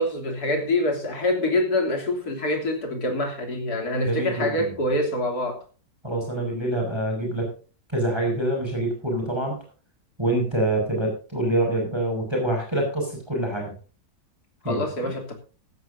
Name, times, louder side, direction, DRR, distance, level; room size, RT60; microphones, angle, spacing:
voice 1, 0.0-5.6 14.6-15.4, left 1 dB, 60° left, 3.7 m, -25 dB
voice 2, 4.0-4.7 6.0-7.5 7.9-9.6 10.2-13.8 14.6-15.1, right 1 dB, 15° right, 6.1 m, -26 dB
16.0 x 14.0 x 2.7 m
omnidirectional pair, 1.9 m